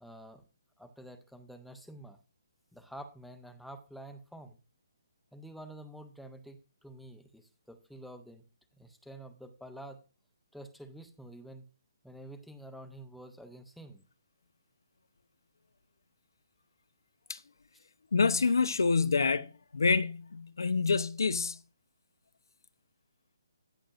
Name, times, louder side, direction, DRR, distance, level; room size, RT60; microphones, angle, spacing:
voice 1, 0.0-0.4 0.8-2.2 2.7-4.6 5.3-8.4 8.8-10.0 10.5-11.6 12.0-14.0, right 1 dB, ahead, 0.4 m, -48 dB
voice 2, 18.1-21.6, left 4 dB, 85° left, 0.8 m, -27 dB
14.5 x 7.3 x 2.5 m
hypercardioid pair, 180°, 2 cm